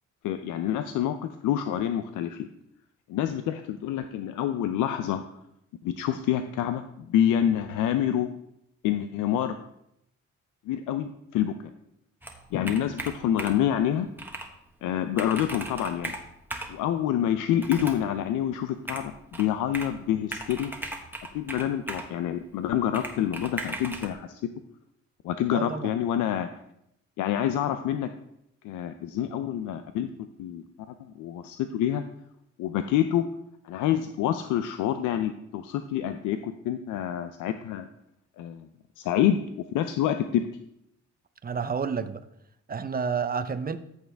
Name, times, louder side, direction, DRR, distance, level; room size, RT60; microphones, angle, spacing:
voice 1, 0.2-1.2 1.4-2.5 3.1-5.2 5.8-8.3 8.8-9.5 10.7-11.5 12.5-14.1 14.8-16.1 16.7-20.7 21.3-24.4 25.2-26.5 27.2-28.1 28.6-30.1 30.4-30.6 31.0-32.0 32.6-33.3 33.6-37.9 38.4-38.7 39.0-39.4 39.7-40.4, left 10 dB, 90° left, 9 dB, 0.6 m, -27 dB
Computer keyboard, 12.2-13.7 14.2-14.5 14.9-15.0 15.2-16.8 17.6-18.1 18.9-20.0 20.3-22.1 22.9-24.1, right 1 dB, 5° right, 1.4 m, -37 dB
voice 2, 25.5-25.9 41.4-42.2 42.7-43.8, right 6 dB, 30° right, 11 dB, 0.8 m, -30 dB
14.0 x 6.5 x 3.5 m, 0.77 s
cardioid pair, 90°, 30 cm